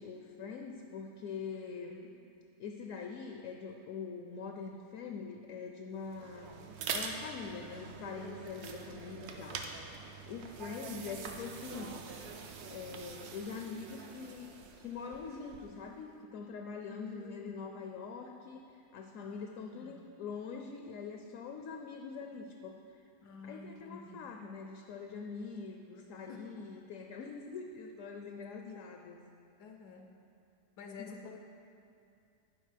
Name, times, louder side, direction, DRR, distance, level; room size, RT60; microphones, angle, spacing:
voice 1, 0.0-2.0 2.6-6.5 6.9-12.1 12.7-14.5 14.8-22.8 23.4-29.2, left 5 dB, 70° left, 3 dB, 0.8 m, -44 dB
sound 1, 6.0-15.9, right 5 dB, 75° right, 1.2 m, -44 dB
voice 2, 16.9-17.6 19.2-20.1 23.2-24.3 25.9-26.5 28.6-28.9 29.6-30.2 30.8-31.4, left 4 dB, 85° left, 4 dB, 1.2 m, -50 dB
11.0 x 4.8 x 5.0 m, 2.5 s
omnidirectional pair, 1.7 m